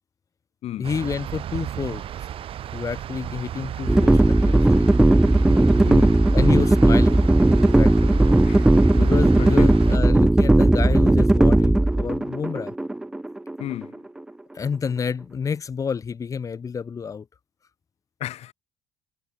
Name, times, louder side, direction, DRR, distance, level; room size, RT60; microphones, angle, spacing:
voice 1, 0.8-2.1 2.7-4.9 6.3-7.2 7.6-8.2 8.9-12.7 14.5-17.3, left 6 dB, 25° left, 4.6 m, -29 dB
sound 1, 0.8-10.0, right 10 dB, 50° right, 5.9 m, -34 dB
sound 2, 3.9-13.9, right 1 dB, 5° right, 0.4 m, -17 dB
voice 2, 5.9-6.2 8.4-8.6 9.4-9.7 13.6-13.9 18.2-18.5, left 13 dB, 60° left, 5.6 m, -33 dB
cardioid pair, 175°, 12 cm